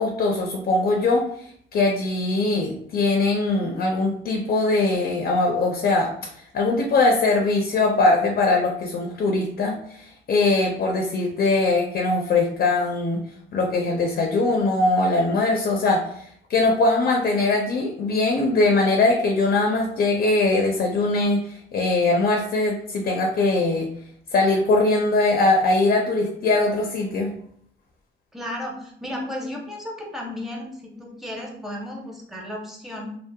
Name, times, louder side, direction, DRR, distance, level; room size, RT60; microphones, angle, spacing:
voice 1, 0.0-13.2 13.5-16.2 16.5-23.9 24.3-27.3, left 2 dB, 50° left, 1 dB, 0.5 m, -21 dB
voice 2, 28.3-33.1, left 1 dB, ahead, -1 dB, 0.7 m, -34 dB
2.7 x 2.1 x 2.2 m, 0.66 s
cardioid pair, 90°, 20 cm